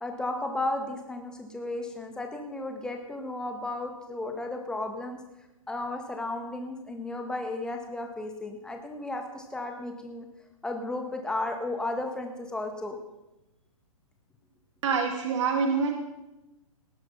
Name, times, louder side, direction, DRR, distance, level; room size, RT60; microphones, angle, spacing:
voice 1, 0.0-5.2 5.7-10.3 10.6-13.0, left 2 dB, 5° left, 3 dB, 1.7 m, -34 dB
voice 2, 14.8-15.9, right 5 dB, 55° right, 3 dB, 2.5 m, -26 dB
18.5 x 7.9 x 5.7 m, 0.97 s
hypercardioid pair, 135°, 18 cm